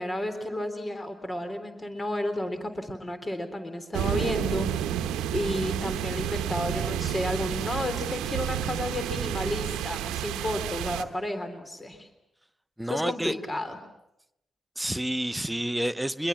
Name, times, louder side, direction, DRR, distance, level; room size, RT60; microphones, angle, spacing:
voice 1, 0.0-4.7 5.3-12.1 12.9-13.8, left 1 dB, 25° left, 8 dB, 3.6 m, -32 dB
sound 1, 3.9-11.0, right 10 dB, 80° right, 1.0 m, -30 dB
voice 2, 12.8-13.3 14.8-16.3, right 1 dB, 10° right, 12 dB, 0.9 m, -29 dB
24.0 x 21.5 x 7.5 m, 0.84 s
hypercardioid pair, 40°, 0 cm